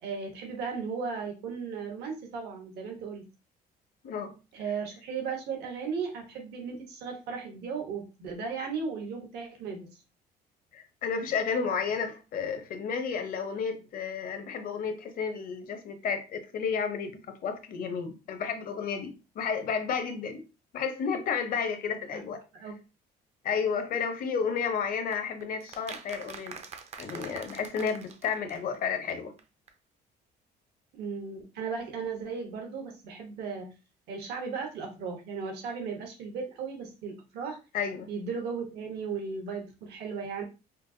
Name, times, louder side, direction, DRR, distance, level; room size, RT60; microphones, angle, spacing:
voice 1, 0.0-3.2 4.5-9.8 22.1-22.2 22.5-22.8 31.0-33.7 34.1-37.6 38.1-40.4, right 5 dB, 75° right, 1.2 m, -36 dB
voice 2, 10.7-20.4 20.7-22.4 23.4-26.6 27.0-29.3 37.7-38.1, left 6 dB, 55° left, 0.8 m, -32 dB
sound 1, 25.1-28.8 29.1-29.2 29.4-29.5 29.7-29.8, right 6 dB, 40° right, 0.5 m, -45 dB
5.2 x 2.0 x 2.7 m
cardioid pair, 110°, 17 cm